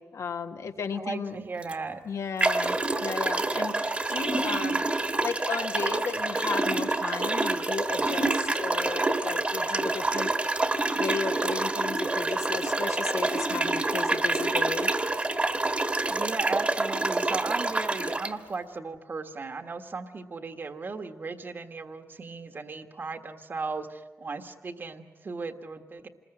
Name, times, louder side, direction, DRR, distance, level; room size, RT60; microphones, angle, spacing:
voice 1, 0.0-1.4 2.0-14.9, left 5 dB, 80° left, 6 dB, 1.5 m, -35 dB
voice 2, 0.9-2.0 16.1-26.1, right 4 dB, 40° right, 7 dB, 1.5 m, -36 dB
sound 1, 1.6-1.7 2.4-18.3, right 2 dB, 25° right, 1.4 m, -27 dB
28.0 x 21.0 x 9.0 m, 1.3 s
wide cardioid pair, 175°, 5 cm